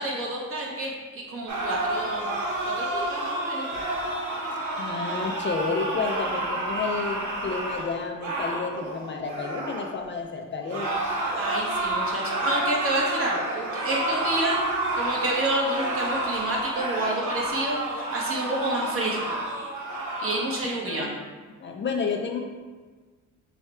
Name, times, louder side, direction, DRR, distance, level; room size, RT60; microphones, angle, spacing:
voice 1, 0.0-2.3 2.6-3.7 11.3-14.6 14.9-19.4 20.2-21.1, right 1 dB, 50° right, -3 dB, 1.2 m, -29 dB
sound 1, 1.5-9.9 10.6-20.6, right 1 dB, 85° right, 1.0 m, -30 dB
voice 2, 4.8-10.9 20.9-21.1 21.6-22.4, left 4 dB, 40° left, 3 dB, 0.4 m, -30 dB
4.7 x 2.3 x 4.3 m, 1.4 s
cardioid pair, 90°, 30 cm